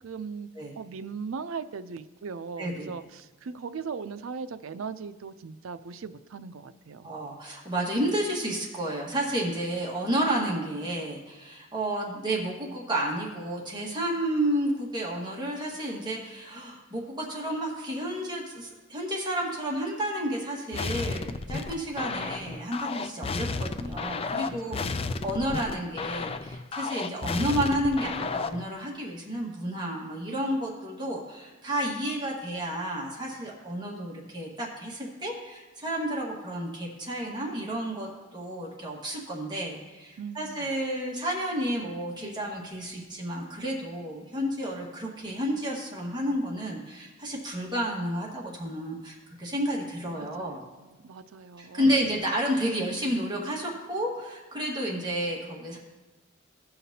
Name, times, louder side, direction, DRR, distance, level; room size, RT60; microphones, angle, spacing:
voice 1, 0.0-0.5 0.8-7.2 24.4-25.3 40.2-40.7 50.1-51.9, right 5 dB, 90° right, 12 dB, 0.5 m, -39 dB
voice 2, 2.6-2.9 7.0-50.6 51.6-55.8, right 1 dB, 20° right, -3 dB, 1.6 m, -31 dB
sound 1, 20.7-28.7, left 4 dB, 30° left, 0.4 m, -33 dB
17.0 x 5.8 x 2.8 m, 1.2 s
head